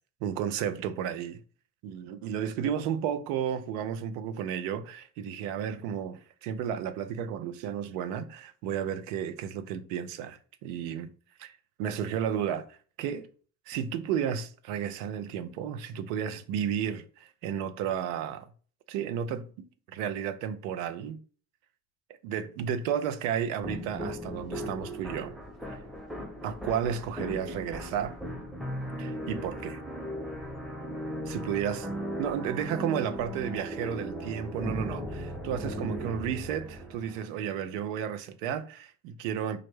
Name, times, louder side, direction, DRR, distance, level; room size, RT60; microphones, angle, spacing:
voice 1, 0.2-1.4 1.8-11.1 11.4-13.3 13.7-18.5 18.9-21.2 22.2-25.3 25.7-25.8 26.4-28.2 29.0-29.8 31.3-31.9 32.2-39.6, right 8 dB, 80° right, 0.6 m, -33 dB
sound 1, 23.6-37.3, equal, ahead, 0.7 m, -37 dB
5.0 x 2.1 x 3.1 m
hypercardioid pair, 45°, 49 cm